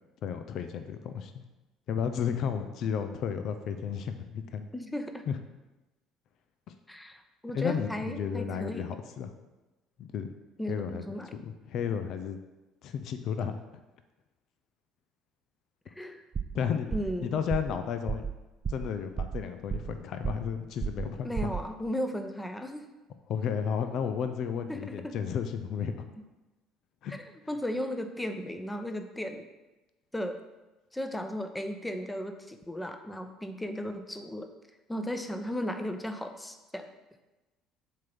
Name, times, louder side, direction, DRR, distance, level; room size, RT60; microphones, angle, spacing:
voice 1, 0.2-1.4 1.9-4.7 5.3-5.4 6.7-6.8 7.5-9.3 10.0-10.3 10.7-11.1 11.4-12.4 12.8-13.6 16.5-16.9 17.2-18.2 18.7-21.5 23.3-26.1 27.0-27.2, left 7 dB, 55° left, 8 dB, 0.6 m, -33 dB
voice 2, 4.7-5.2 6.9-8.9 10.6-11.3 16.0-16.2 16.9-17.4 21.2-22.8 24.7-25.1 27.1-27.2 27.5-29.4 30.1-30.4 30.9-34.5 34.9-36.9, equal, 10° left, 7 dB, 0.9 m, -35 dB
sound 1, 16.3-16.6 16.9-17.2 17.5-17.8 18.1-18.3 18.6-18.9 19.2-20.0 20.2-20.5 20.8-21.1 21.4-21.7, right 6 dB, 35° right, 0.6 m, -33 dB
7.4 x 3.8 x 6.1 m, 1.1 s
hypercardioid pair, 60°, 0 cm